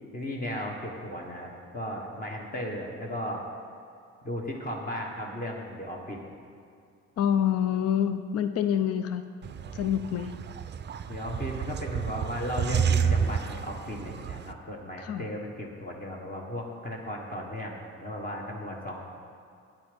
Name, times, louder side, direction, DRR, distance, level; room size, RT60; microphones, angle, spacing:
voice 1, 0.1-3.5 4.2-6.2 11.1-19.0, equal, 30° left, -1 dB, 1.4 m, -35 dB
voice 2, 7.2-9.2 9.7-10.3 15.0-15.3, left 9 dB, 55° left, 10 dB, 0.6 m, -27 dB
sound 1, 9.4-14.5, right 7 dB, 35° right, 0.5 m, -30 dB
9.2 x 8.5 x 5.3 m, 2.5 s
cardioid pair, 90°, 30 cm